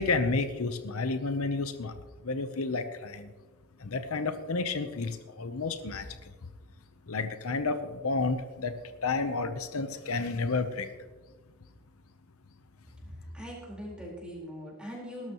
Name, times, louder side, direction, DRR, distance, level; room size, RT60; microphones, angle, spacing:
voice 1, 0.0-1.9 2.2-3.3 3.8-6.3 7.1-8.7 9.0-10.9, left 3 dB, 75° left, 9 dB, 0.9 m, -31 dB
voice 2, 13.3-15.3, equal, 5° right, -4 dB, 4.4 m, -41 dB
20.0 x 12.5 x 3.1 m, 1.3 s
head